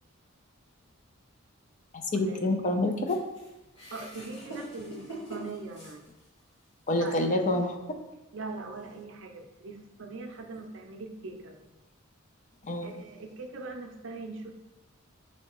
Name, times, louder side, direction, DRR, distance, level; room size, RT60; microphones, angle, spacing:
voice 1, 2.1-3.2 6.9-7.7 12.6-13.0, left 2 dB, 35° left, 4 dB, 0.4 m, -27 dB
sound 1, 3.1-6.5 7.0-7.2 8.1-8.2, right 1 dB, 60° left, 1.4 m, -44 dB
voice 2, 3.9-6.0 6.9-7.4 8.3-11.7 12.8-14.5, right 3 dB, 60° right, 4 dB, 0.5 m, -41 dB
5.5 x 3.2 x 3.0 m, 0.99 s
head